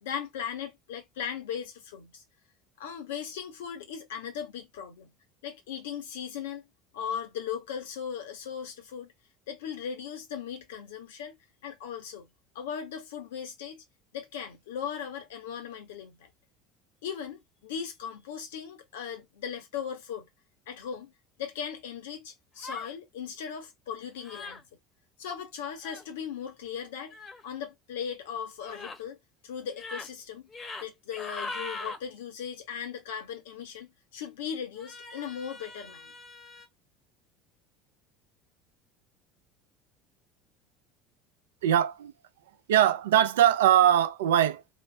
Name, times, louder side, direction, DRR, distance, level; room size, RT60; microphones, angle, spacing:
voice 1, 0.0-2.2 2.8-5.1 5.4-6.7 6.9-9.1 9.5-11.4 11.6-12.3 12.5-13.8 14.1-16.3 17.0-20.3 20.7-21.1 21.4-24.6 25.2-27.2 27.4-29.2 29.4-30.5 30.8-36.1, left 8 dB, 80° left, 1.3 m, -38 dB
sound 1, 22.6-22.9 24.2-24.6 25.8-26.1 27.1-27.4 28.6-29.0 29.7-30.1 30.5-30.8 31.1-32.0 34.8-36.7, left 3 dB, 25° left, 1.2 m, -41 dB
voice 2, 41.6-42.1 42.7-44.7, right 11 dB, 80° right, 0.5 m, -22 dB
3.2 x 2.6 x 3.4 m
hypercardioid pair, 75°, 0 cm